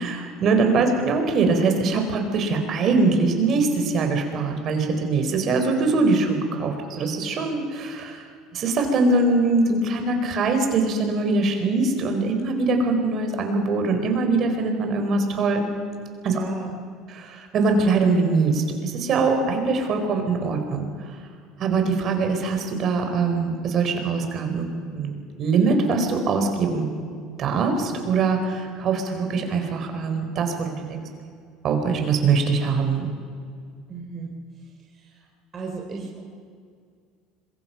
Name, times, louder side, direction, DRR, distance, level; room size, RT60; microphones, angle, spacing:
voice 1, 0.0-8.2 8.5-15.7 16.2-16.4 17.1-20.9 21.6-26.9 27.4-31.0 31.6-33.1, right 3 dB, 45° right, 5 dB, 4.3 m, -22 dB
voice 2, 16.3-16.7 33.9-34.3 35.5-36.2, right 4 dB, 30° right, -1 dB, 3.2 m, -34 dB
26.0 x 22.0 x 5.8 m, 2.2 s
supercardioid pair, 115°, 0 cm